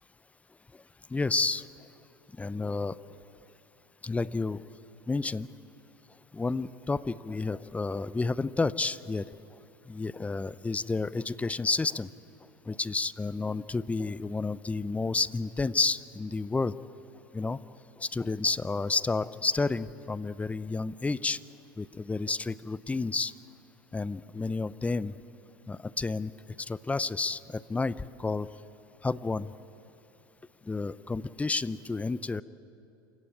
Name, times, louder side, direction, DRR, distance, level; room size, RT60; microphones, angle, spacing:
voice 1, 1.1-1.7 2.4-3.0 4.0-4.6 5.1-5.5 6.3-9.3 9.9-12.1 12.7-16.7 17.3-17.6 18.0-21.4 21.8-23.3 23.9-25.1 25.7-26.3 26.6-28.5 29.0-29.5 30.7-32.4, left 3 dB, 10° left, 18 dB, 0.6 m, -30 dB
28.0 x 16.0 x 8.8 m, 2.9 s
hypercardioid pair, 95°, 12 cm